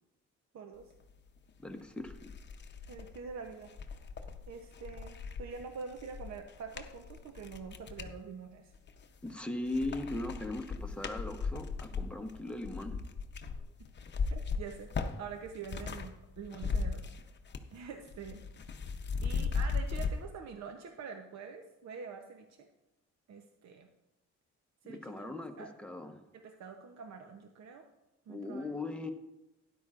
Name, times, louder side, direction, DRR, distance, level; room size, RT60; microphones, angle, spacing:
voice 1, 0.5-0.9 2.9-3.7 4.5-8.7 13.8-13.9 14.3-17.1 17.7-18.4 18.9-22.7 23.3-23.9 24.8-25.3 25.6-25.7 26.3-27.9 28.3-28.7, right 5 dB, 60° right, 5 dB, 0.9 m, -46 dB
sound 1, 1.5-1.6 2.0-8.2 8.7-9.3 9.6-16.1 16.4-17.8 18.0-20.1, left 5 dB, 35° left, 0.8 m, -37 dB
voice 2, 1.6-2.2 9.2-13.0 24.9-26.2 28.3-29.1, left 2 dB, 5° left, 3 dB, 1.0 m, -39 dB
12.5 x 10.0 x 2.5 m, 0.94 s
cardioid pair, 90°, 30 cm